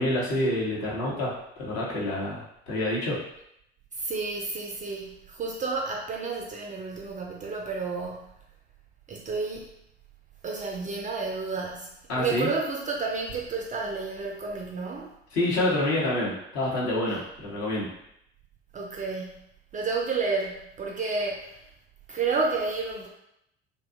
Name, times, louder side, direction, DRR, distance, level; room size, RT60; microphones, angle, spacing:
voice 1, 0.0-3.2 12.1-12.5 15.3-17.9, left 1 dB, 50° left, -5 dB, 1.0 m, -27 dB
voice 2, 3.9-8.3 9.1-9.7 10.4-15.1 18.7-19.3 19.7-21.6 22.1-23.1, right 4 dB, 25° right, -1 dB, 0.4 m, -31 dB
2.6 x 2.3 x 2.5 m, 0.78 s
figure-of-eight pair, 55°, 32 cm